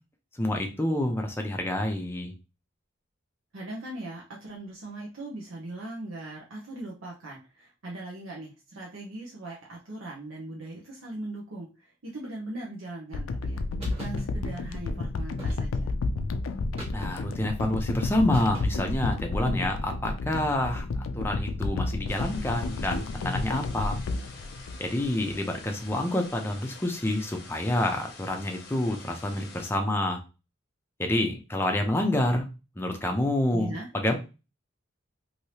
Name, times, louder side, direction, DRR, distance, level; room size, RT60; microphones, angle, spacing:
voice 1, 0.3-2.3 16.9-24.0 24.8-30.2 31.0-32.5 32.8-34.1, left 1 dB, 10° left, 3 dB, 0.5 m, -28 dB
voice 2, 3.5-15.9 33.5-33.9, right 2 dB, 85° right, -3 dB, 0.8 m, -40 dB
sound 1, 13.1-25.4 25.9-26.0, left 3 dB, 85° left, 0.4 m, -31 dB
sound 2, 13.8-14.2 15.4-15.9 16.8-17.4 18.3-19.0, right 1 dB, 30° right, 1.1 m, -42 dB
sound 3, 22.1-29.7, left 4 dB, 50° left, 0.7 m, -47 dB
3.2 x 2.7 x 2.8 m, 0.30 s
head